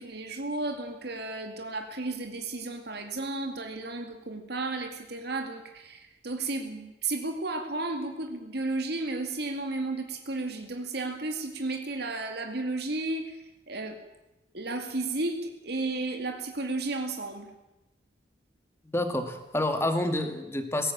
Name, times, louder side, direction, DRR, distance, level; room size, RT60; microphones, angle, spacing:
voice 1, 0.0-14.0 14.5-17.5, right 2 dB, 65° right, 5 dB, 2.3 m, -33 dB
voice 2, 18.8-20.9, left 1 dB, 15° left, 7 dB, 2.3 m, -28 dB
19.5 x 17.0 x 8.7 m, 1.0 s
head